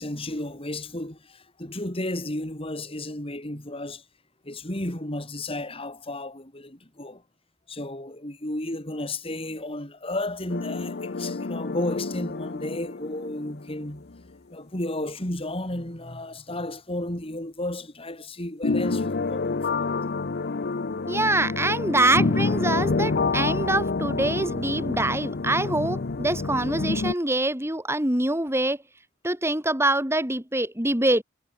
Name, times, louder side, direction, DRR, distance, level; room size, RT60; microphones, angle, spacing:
voice 1, 0.0-4.0 4.4-7.2 7.7-14.1 14.5-19.9, left 1 dB, 30° left, 3.8 m, -33 dB
sound 1, 10.5-13.9 14.1-14.2 18.6-27.1, left 3 dB, 50° left, 0.7 m, -28 dB
voice 2, 21.1-28.8 29.2-31.2, right 2 dB, 15° right, 3.5 m, -24 dB
head